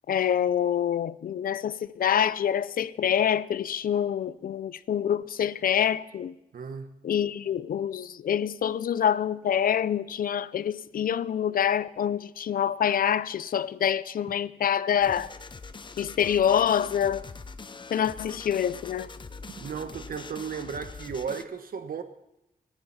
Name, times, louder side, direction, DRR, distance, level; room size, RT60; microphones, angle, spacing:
voice 1, 0.1-6.3 7.0-15.3 16.0-17.2 17.9-19.1, left 9 dB, 85° left, 0.5 m, -26 dB
voice 2, 6.5-6.9 19.6-22.0, right 6 dB, 85° right, 1.2 m, -35 dB
sound 1, 15.0-21.4, left 4 dB, 35° left, 0.7 m, -43 dB
26.5 x 10.5 x 4.2 m
wide cardioid pair, 130°, 14 cm